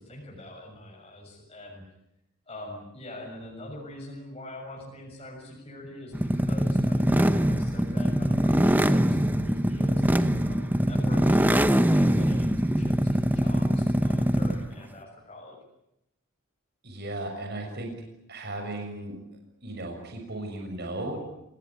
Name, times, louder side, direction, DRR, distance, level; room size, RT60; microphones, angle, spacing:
voice 1, 0.0-1.8 2.5-15.6, left 1 dB, 30° left, -2 dB, 6.7 m, -44 dB
sound 1, 6.1-14.7, equal, 10° right, 1.1 m, -23 dB
voice 2, 16.8-17.9 18.3-19.2 19.6-21.2, right 1 dB, 50° right, 3 dB, 6.7 m, -35 dB
27.5 x 19.5 x 9.7 m, 0.83 s
head